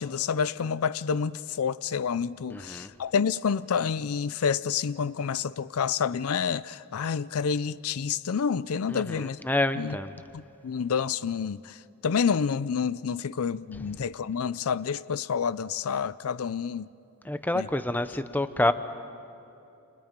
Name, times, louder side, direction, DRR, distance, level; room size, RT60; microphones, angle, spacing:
voice 1, 0.0-9.4 9.8-9.9 10.3-11.7 12.0-16.9 17.6-17.7, left 6 dB, 75° left, 0.5 m, -28 dB
voice 2, 2.5-2.9 8.9-10.1 13.7-14.0 17.2-18.7, left 1 dB, 10° left, 0.7 m, -28 dB
29.5 x 28.5 x 5.2 m
head